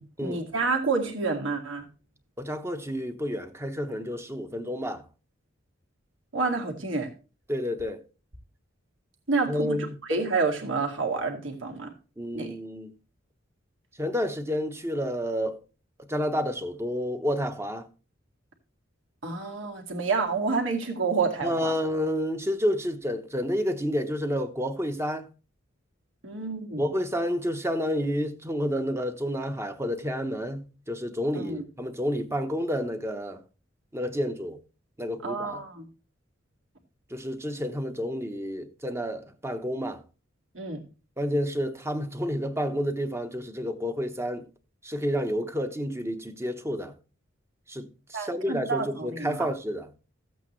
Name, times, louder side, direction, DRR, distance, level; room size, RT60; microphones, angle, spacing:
voice 1, 0.2-1.9 6.3-7.1 9.3-11.9 12.3-12.5 19.2-21.7 26.2-26.9 31.3-31.6 35.2-35.9 40.5-40.8 48.1-49.5, right 4 dB, 70° right, 2.1 m, -29 dB
voice 2, 2.4-5.0 7.5-8.0 9.5-10.0 12.2-12.9 14.0-15.6 16.1-17.9 21.4-25.3 26.8-33.4 33.9-34.6 35.0-35.6 37.1-40.0 41.2-44.5 44.8-46.9 47.7-49.9, equal, 15° right, 0.9 m, -30 dB
14.0 x 8.3 x 3.1 m
head